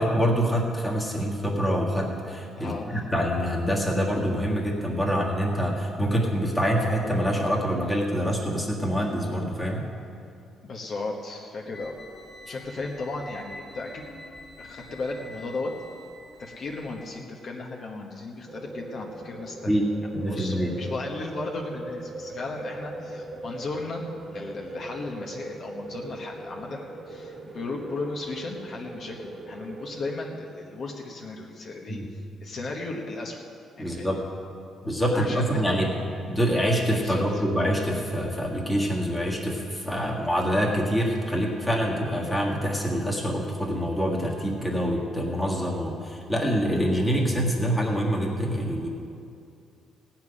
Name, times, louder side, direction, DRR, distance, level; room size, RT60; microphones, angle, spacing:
voice 1, 0.0-9.8 19.6-19.8 20.1-20.7 31.9-32.0 33.8-34.2 34.8-35.9 36.3-48.9, equal, 5° left, -3 dB, 1.7 m, -25 dB
voice 2, 2.6-3.0 10.6-11.9 12.5-14.1 14.6-15.7 16.4-19.8 20.3-24.0 24.3-33.4 33.8-34.2 35.1-35.9 37.0-37.4, left 3 dB, 40° left, -1 dB, 1.2 m, -35 dB
sound 1, 11.7-17.2, left 2 dB, 20° left, 1.9 m, -46 dB
sound 2, 18.5-30.2, right 2 dB, 25° right, 1.2 m, -40 dB
17.0 x 5.9 x 9.8 m, 2.5 s
cardioid pair, 175°, 0 cm